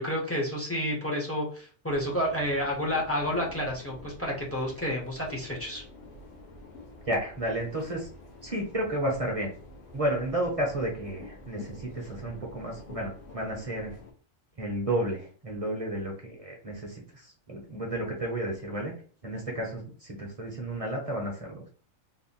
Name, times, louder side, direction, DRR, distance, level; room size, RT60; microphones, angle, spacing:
voice 1, 0.0-5.8, equal, 15° left, -2 dB, 0.7 m, -30 dB
sound 1, 1.9-14.1, left 2 dB, 70° left, 1.2 m, -48 dB
voice 2, 7.1-8.1 8.4-9.5 9.9-14.0 14.6-18.9 19.2-21.7, right 1 dB, 30° right, -1 dB, 0.8 m, -32 dB
3.4 x 2.2 x 4.2 m, 0.42 s
omnidirectional pair, 1.4 m